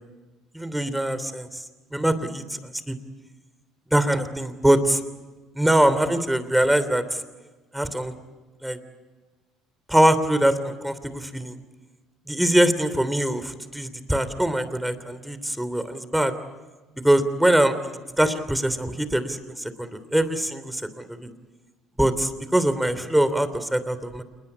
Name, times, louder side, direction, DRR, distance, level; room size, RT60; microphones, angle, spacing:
voice 1, 0.5-1.5 1.9-2.4 2.9-3.0 3.9-5.0 5.5-7.0 7.7-8.1 8.6-8.8 9.9-11.5 12.3-16.3 17.0-21.3 22.0-24.2, right 1 dB, 5° right, 12 dB, 3.2 m, -23 dB
28.5 x 21.0 x 8.6 m, 1.3 s
hypercardioid pair, 60°, 0 cm